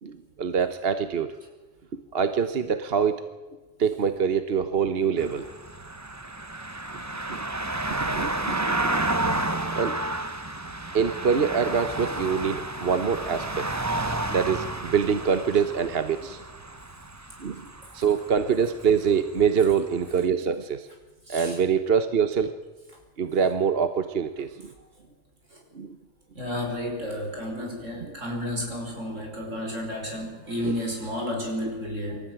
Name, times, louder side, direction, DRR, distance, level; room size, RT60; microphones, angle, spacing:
voice 1, 0.0-1.3 2.1-3.3 3.8-5.5 7.3-7.4 8.1-8.8 9.7-10.0 10.9-13.7 14.3-16.4 17.4-17.6 17.9-20.9 21.3-22.5 23.2-24.7 25.7-26.0 30.6-30.7, right 6 dB, 50° right, 10 dB, 1.1 m, -25 dB
sound 1, 5.2-19.7 20.1-20.2, right 2 dB, 15° right, 1.0 m, -31 dB
voice 2, 21.3-21.6 24.8-24.9 25.5-25.6 26.3-32.3, left 1 dB, 70° right, 1 dB, 5.5 m, -32 dB
25.5 x 14.0 x 9.3 m, 1.2 s
omnidirectional pair, 1.3 m